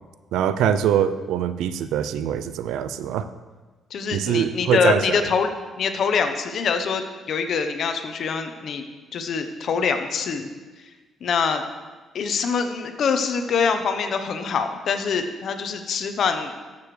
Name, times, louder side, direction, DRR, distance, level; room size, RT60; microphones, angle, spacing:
voice 1, 0.3-3.3 4.1-5.2, right 9 dB, 85° right, 12 dB, 0.5 m, -23 dB
voice 2, 3.9-5.5 5.8-8.8 9.1-10.5 11.2-11.6 12.1-16.5, left 5 dB, 60° left, 7 dB, 0.9 m, -24 dB
13.5 x 7.0 x 3.3 m, 1.3 s
cardioid pair, 90°, 0 cm